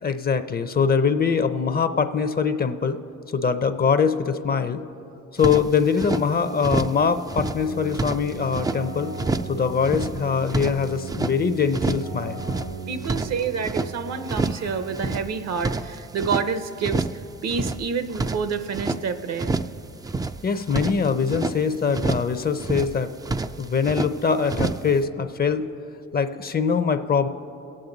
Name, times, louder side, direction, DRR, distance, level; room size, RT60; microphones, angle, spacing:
voice 1, 0.0-3.0 3.3-4.8 5.3-9.1 9.5-12.4 20.4-23.1 23.6-25.7 26.1-27.3, left 6 dB, 30° left, 10 dB, 0.6 m, -23 dB
sound 1, 5.4-6.2 6.6-7.0 7.3-8.8 9.2-9.6 9.8-11.4 11.7-12.1 12.4-13.9 14.3-14.7 14.9-16.5 16.8-17.2 17.5-19.0 19.4-19.8 20.0-21.6 21.9-22.3 22.6-23.0 23.2-24.1 24.5-24.9, right 3 dB, 15° right, 0.3 m, -28 dB
Keyboard (musical), 7.6-15.7, right 5 dB, 75° right, 1.7 m, -37 dB
voice 2, 12.9-17.1 17.4-19.5, right 5 dB, 60° right, 11 dB, 0.8 m, -28 dB
22.0 x 8.8 x 3.9 m, 3.0 s
cardioid pair, 90°, 30 cm